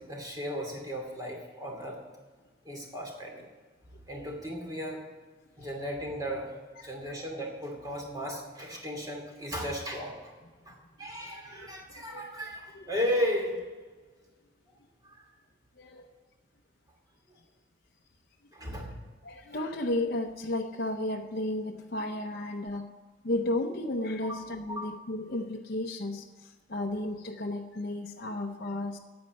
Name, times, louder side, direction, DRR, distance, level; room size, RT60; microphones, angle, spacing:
voice 1, 0.0-2.0 2.6-3.5 4.1-5.0 5.6-6.5 6.8-10.3 10.7-13.8 15.0-15.3 18.5-18.9 24.2-24.4 24.7-24.8, equal, 20° right, 0 dB, 2.6 m, -35 dB
voice 2, 19.2-22.8 23.2-29.0, left 1 dB, 55° left, 1 dB, 0.7 m, -33 dB
9.7 x 8.7 x 8.9 m, 1.4 s
head